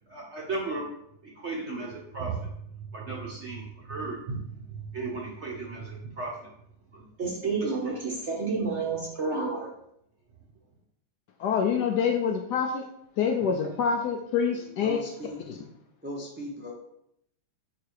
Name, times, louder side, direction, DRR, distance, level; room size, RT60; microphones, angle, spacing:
voice 1, 0.1-0.9 1.2-6.5 6.9-9.7, right 4 dB, 50° right, -2 dB, 0.9 m, -33 dB
voice 2, 11.4-12.8 13.2-15.0 15.5-15.6, left 6 dB, 70° left, 4 dB, 1.0 m, -26 dB
voice 3, 14.5-15.6 16.0-16.7, left 1 dB, 15° right, -2 dB, 0.4 m, -39 dB
5.0 x 4.7 x 4.7 m, 0.76 s
omnidirectional pair, 2.2 m